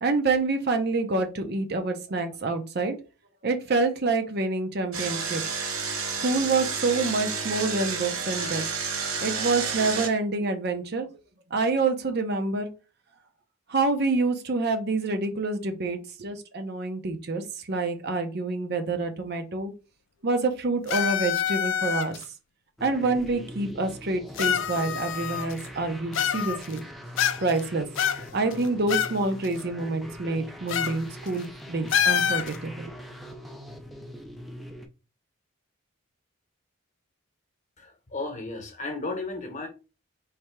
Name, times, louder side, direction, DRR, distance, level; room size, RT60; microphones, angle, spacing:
voice 1, 0.0-3.0 3.4-5.4 6.2-8.6 9.2-11.1 11.5-12.7 13.7-19.7 20.2-22.2 22.8-26.9 27.4-27.9 28.3-32.9, right 3 dB, 50° right, 6 dB, 0.6 m, -27 dB
Engine, 4.9-10.1, right 5 dB, 80° right, 1.0 m, -30 dB
sound 1, 20.9-22.2 23.2-23.3 24.4-25.7 26.1-26.8 27.2-27.6 28.0-29.2 29.4-29.5 30.7-31.0 31.3-31.4 31.9-32.6, left 9 dB, 60° left, 0.3 m, -26 dB
sound 2, 22.8-34.9, equal, ahead, 0.4 m, -42 dB
voice 2, 37.8-39.7, left 3 dB, 35° left, 3 dB, 1.0 m, -34 dB
3.3 x 2.8 x 4.5 m, 0.32 s
head